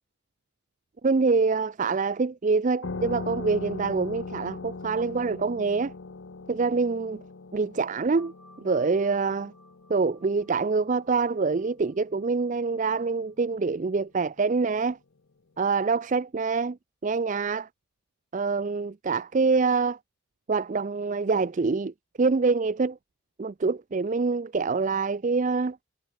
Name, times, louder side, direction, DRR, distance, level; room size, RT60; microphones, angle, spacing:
voice 1, 1.0-5.9 6.5-7.2 7.5-8.3 8.6-9.5 9.9-15.0 15.6-16.8 17.0-17.7 18.3-20.0 20.5-21.9 22.2-23.0 23.4-25.8, right 4 dB, 35° right, 0.4 m, -25 dB
sound 1, 2.8-12.0, left 3 dB, 60° left, 0.7 m, -40 dB
sound 2, 8.2-13.3, equal, ahead, 6.3 m, -59 dB
head